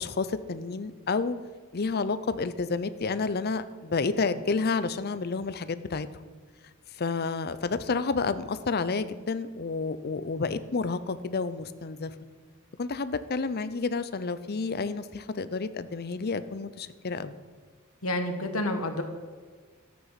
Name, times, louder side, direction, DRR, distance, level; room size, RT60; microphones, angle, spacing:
voice 1, 0.0-1.4 1.7-6.1 7.0-12.1 12.8-17.3, left 4 dB, 50° left, 13 dB, 0.6 m, -30 dB
voice 2, 18.0-19.0, left 1 dB, 80° left, 6 dB, 1.4 m, -29 dB
13.0 x 8.7 x 5.7 m, 1.5 s
head